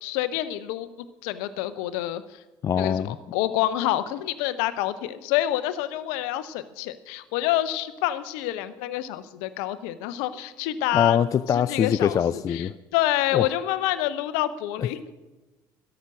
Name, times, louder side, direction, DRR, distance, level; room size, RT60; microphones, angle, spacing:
voice 1, 0.0-0.9 1.2-2.4 2.8-11.2 11.5-15.1, left 13 dB, 60° left, 14 dB, 0.8 m, -27 dB
voice 2, 2.6-3.2 10.9-12.7 13.3-13.5 14.8-14.9, left 8 dB, 30° left, 15 dB, 0.4 m, -23 dB
13.5 x 11.5 x 6.3 m, 1.1 s
figure-of-eight pair, 55°, 11 cm